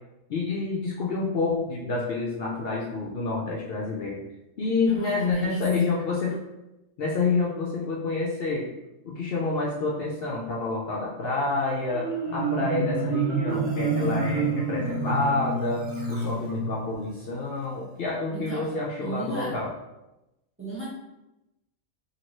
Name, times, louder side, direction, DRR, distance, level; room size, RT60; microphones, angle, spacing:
voice 1, 0.3-4.2 4.6-6.4 7.0-8.7 9.0-19.7, left 3 dB, 70° left, -3 dB, 0.5 m, -28 dB
voice 2, 4.9-5.7 18.3-19.6 20.6-20.9, right 2 dB, 10° right, -8 dB, 0.9 m, -35 dB
Marimba xylophone, 11.9-17.0, right 3 dB, 55° right, 1.1 m, -28 dB
2.8 x 2.8 x 3.0 m, 0.95 s
omnidirectional pair, 1.5 m